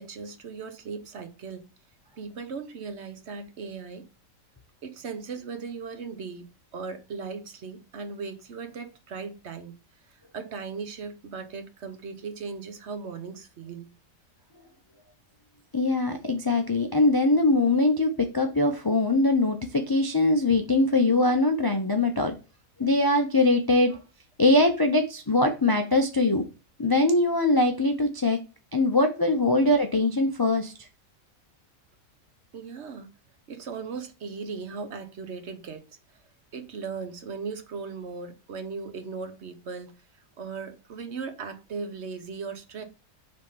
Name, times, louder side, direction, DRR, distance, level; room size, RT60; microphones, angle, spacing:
voice 1, 0.0-1.7 2.2-4.1 4.8-6.5 6.7-9.7 10.3-13.9 32.5-33.1 33.5-35.8 36.5-40.0 40.4-42.8, right 5 dB, 55° right, 1.0 m, -37 dB
voice 2, 15.7-22.3 22.8-24.0 24.4-26.4 26.8-28.4 28.7-30.7, left 2 dB, 30° left, 0.4 m, -22 dB
5.1 x 3.6 x 5.5 m
omnidirectional pair, 1.4 m